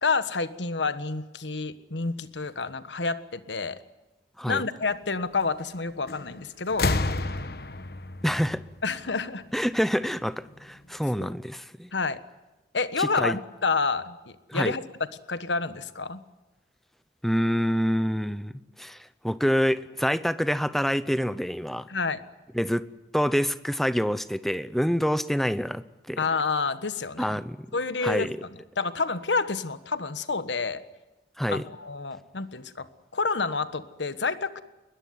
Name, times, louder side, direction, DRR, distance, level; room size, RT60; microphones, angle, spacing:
voice 1, 0.0-3.8 4.5-6.9 8.8-9.4 11.2-11.3 11.9-12.2 12.7-14.8 15.3-16.2 21.9-22.2 26.2-27.4 27.7-28.3 28.8-30.8 31.5-32.9 33.1-34.6, left 4 dB, 90° left, 13 dB, 1.4 m, -29 dB
sound 1, 6.1-6.4 6.7-9.4 10.6-10.7, left 2 dB, 60° left, 1.3 m, -30 dB
voice 2, 8.2-8.6 9.5-11.9 13.0-13.4 14.5-14.8 17.2-18.5 18.8-21.9 22.5-22.9 23.1-26.2 27.2-27.6 28.0-28.4 31.4-31.6, equal, ahead, 15 dB, 0.8 m, -26 dB
21.5 x 20.5 x 9.5 m, 1.1 s
head